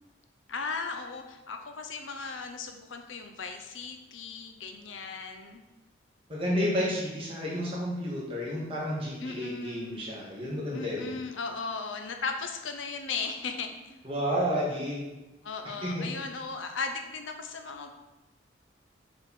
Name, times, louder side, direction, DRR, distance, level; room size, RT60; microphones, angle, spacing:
voice 1, 0.5-5.6 9.2-10.0 10.7-14.0 15.4-17.9, left 4 dB, 80° left, 5 dB, 0.7 m, -37 dB
voice 2, 6.3-11.1 14.0-15.0 15.8-16.0, equal, 30° right, -5 dB, 1.9 m, -31 dB
6.9 x 4.5 x 4.3 m, 1.0 s
head